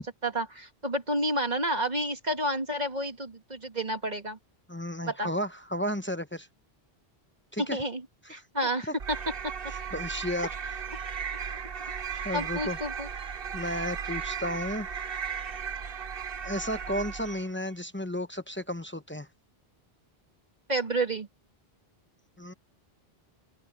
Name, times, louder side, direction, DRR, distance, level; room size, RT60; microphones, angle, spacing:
voice 1, 0.0-4.4 5.0-5.3 7.7-8.0 8.3-8.9 10.4-10.5 12.1-13.1 20.7-21.3, right 1 dB, 45° right, 2.2 m, -30 dB
voice 2, 4.7-6.5 7.5-7.8 8.2-8.4 8.9-9.0 9.7-10.5 12.2-12.8 13.5-14.9 16.4-19.3 22.4-22.5, equal, 15° left, 0.7 m, -33 dB
sound 1, 9.0-17.6, right 7 dB, 65° right, 1.2 m, -36 dB
open air
omnidirectional pair, 1.0 m